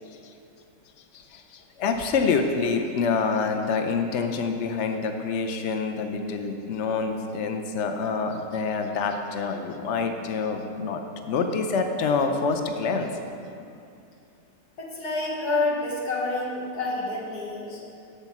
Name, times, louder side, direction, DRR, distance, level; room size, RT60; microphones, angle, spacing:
voice 1, 1.1-13.1, left 5 dB, 55° left, 5 dB, 0.9 m, -27 dB
voice 2, 14.8-17.8, left 2 dB, 85° left, -3 dB, 2.0 m, -28 dB
10.5 x 4.3 x 7.3 m, 2.6 s
omnidirectional pair, 1.7 m